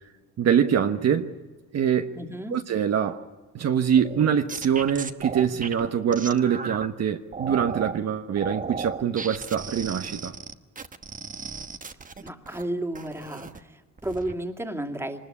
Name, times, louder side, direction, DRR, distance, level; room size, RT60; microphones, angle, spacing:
voice 1, 0.4-1.3 1.7-2.2 2.5-3.2 3.5-10.3, right 8 dB, 60° right, 1.2 m, -24 dB
voice 2, 2.1-2.6 12.2-15.2, right 1 dB, 10° right, 2.5 m, -33 dB
sound 1, 4.0-6.9 7.3-8.0 8.4-12.6 12.9-13.6 14.0-14.3, right 5 dB, 25° right, 1.2 m, -35 dB
24.5 x 20.0 x 9.9 m
cardioid pair, 90°, 30 cm